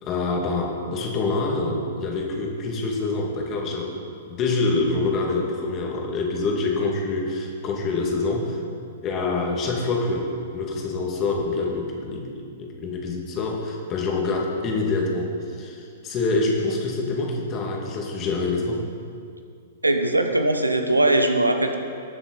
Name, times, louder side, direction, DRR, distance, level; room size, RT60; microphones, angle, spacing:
voice 1, 0.0-3.9 4.3-8.6 9.0-12.3 12.6-18.9, left 3 dB, 30° left, 0 dB, 2.0 m, -26 dB
voice 2, 19.8-21.8, right 1 dB, 85° right, 6 dB, 0.9 m, -20 dB
19.0 x 7.0 x 4.0 m, 2.3 s
figure-of-eight pair, 105°, 0 cm